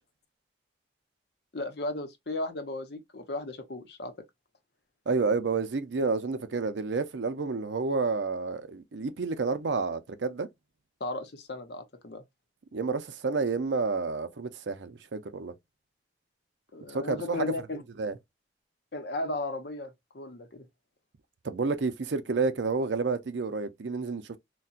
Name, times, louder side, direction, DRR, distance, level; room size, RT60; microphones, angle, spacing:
voice 1, 1.5-4.1 11.0-12.2 16.7-17.8 18.9-20.6, left 2 dB, 65° left, 0.7 m, -35 dB
voice 2, 5.1-10.5 12.7-15.5 16.9-17.5 18.0-18.1 21.4-24.4, right 4 dB, 85° right, 0.6 m, -30 dB
4.1 x 2.2 x 2.4 m
head